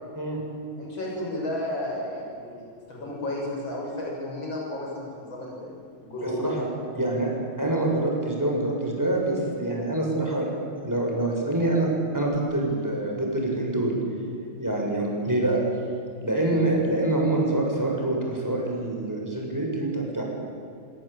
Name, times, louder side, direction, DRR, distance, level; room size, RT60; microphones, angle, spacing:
voice 1, 0.8-6.4, left 1 dB, 70° left, -2 dB, 7.9 m, -33 dB
voice 2, 6.2-6.7 6.9-7.3 7.6-10.5 10.8-11.9 12.1-13.9 14.6-15.6 16.2-20.2, right 2 dB, 10° right, -1 dB, 7.1 m, -25 dB
25.5 x 24.0 x 9.1 m, 2.4 s
omnidirectional pair, 2.2 m